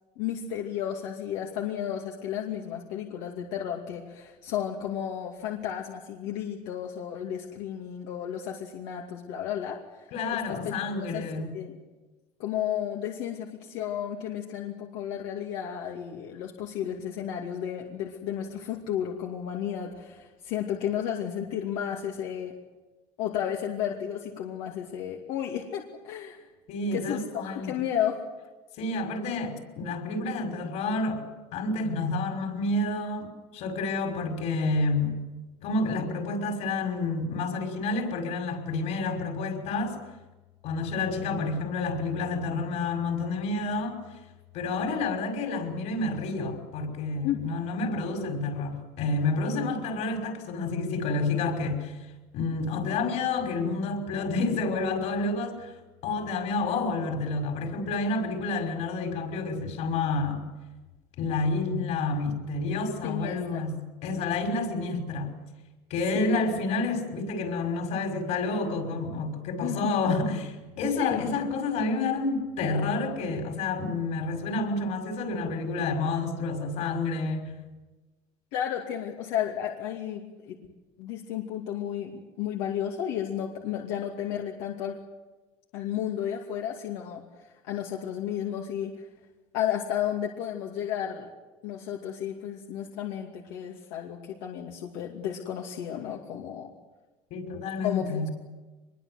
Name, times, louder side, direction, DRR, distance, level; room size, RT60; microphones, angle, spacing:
voice 1, 0.2-11.8 12.4-22.5 23.2-26.4 26.9-28.2 47.2-47.4 63.0-63.6 66.1-66.4 69.6-70.1 71.0-71.2 78.5-80.6 81.0-82.1 82.4-85.0 85.7-87.2 87.7-89.0 89.5-91.3 91.6-96.7 97.8-98.3, left 10 dB, 90° left, 0 dB, 2.6 m, -33 dB
voice 2, 10.1-11.5 26.7-27.7 28.8-31.2 31.5-35.2 35.6-40.0 40.6-44.0 44.5-52.0 52.3-55.7 56.0-60.4 61.2-65.3 65.9-77.5 97.3-98.3, left 3 dB, 65° left, 4 dB, 5.8 m, -29 dB
24.5 x 22.0 x 8.0 m, 1.2 s
cardioid pair, 140°, 12 cm